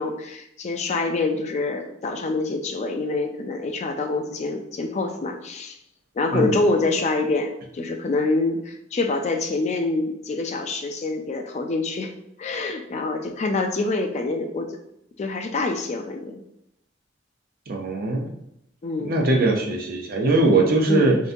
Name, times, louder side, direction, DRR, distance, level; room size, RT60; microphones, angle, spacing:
voice 1, 0.0-5.8 6.2-12.1 12.4-14.8 15.2-16.4 18.8-19.2 20.9-21.1, left 3 dB, 40° left, 4 dB, 0.4 m, -26 dB
voice 2, 17.7-18.3 19.0-21.2, right 2 dB, 55° right, 1 dB, 0.6 m, -20 dB
3.6 x 2.7 x 2.5 m, 0.77 s
head